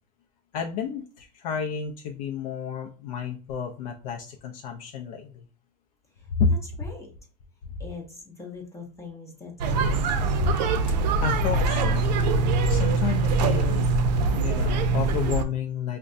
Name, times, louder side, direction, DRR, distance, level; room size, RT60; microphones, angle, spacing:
voice 1, 0.5-5.4 6.3-6.5 7.7-7.8 10.4-10.5 11.2-12.1 12.7-13.9 14.3-16.0, left 6 dB, 60° left, 1 dB, 0.5 m, -30 dB
voice 2, 6.6-7.1 7.8-10.0, left 4 dB, 15° left, 0 dB, 0.6 m, -42 dB
sound 1, 9.6-15.4, right 3 dB, 80° right, 0.5 m, -23 dB
5.2 x 2.1 x 2.5 m, 0.38 s
supercardioid pair, 145°, 21 cm